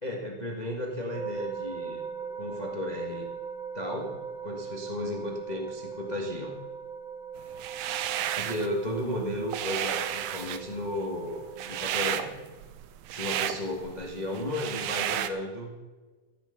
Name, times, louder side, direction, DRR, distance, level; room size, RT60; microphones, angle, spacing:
voice 1, 0.0-2.0 2.3-3.3 3.7-6.6 8.3-12.4 13.1-15.7, left 1 dB, 85° left, 0 dB, 0.3 m, -34 dB
sound 1, 1.1-12.3, right 6 dB, 30° right, 5.4 m, -40 dB
sound 2, 7.5-8.7 9.1-15.3, right 11 dB, 85° right, 1.5 m, -32 dB
15.0 x 9.4 x 5.9 m, 1.3 s
omnidirectional pair, 4.0 m